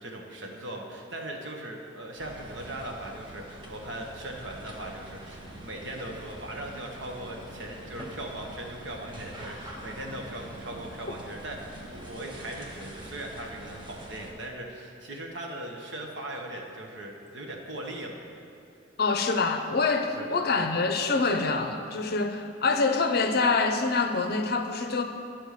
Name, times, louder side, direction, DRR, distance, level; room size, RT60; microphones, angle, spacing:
voice 1, 0.0-18.2 20.1-20.4, right 1 dB, 65° right, 1 dB, 1.1 m, -39 dB
sound 1, 2.2-14.3, right 1 dB, 25° right, 1.0 m, -44 dB
voice 2, 19.0-25.0, left 4 dB, 50° left, 6 dB, 0.6 m, -25 dB
11.0 x 4.4 x 6.5 m, 2.5 s
head